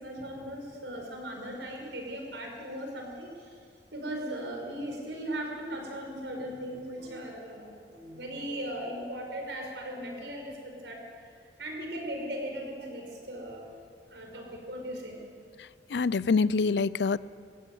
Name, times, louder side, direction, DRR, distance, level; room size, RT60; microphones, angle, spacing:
voice 1, 0.0-3.6 3.9-11.3 11.6-13.7 14.1-15.2, right 1 dB, 90° right, 1 dB, 5.5 m, -38 dB
voice 2, 15.6-17.2, left 4 dB, 70° left, 19 dB, 0.5 m, -26 dB
21.0 x 16.0 x 9.3 m, 2.2 s
head